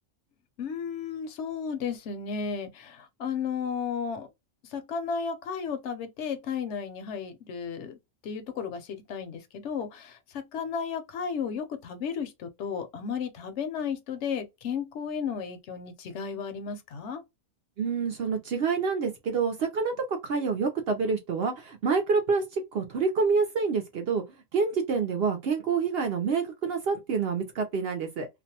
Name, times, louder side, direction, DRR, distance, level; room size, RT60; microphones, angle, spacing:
voice 1, 0.6-4.3 4.7-17.2, left 6 dB, 60° left, 0.9 m, -34 dB
voice 2, 17.8-24.2 24.5-28.3, right 5 dB, 65° right, 0.6 m, -27 dB
2.5 x 2.1 x 2.7 m
omnidirectional pair, 1.5 m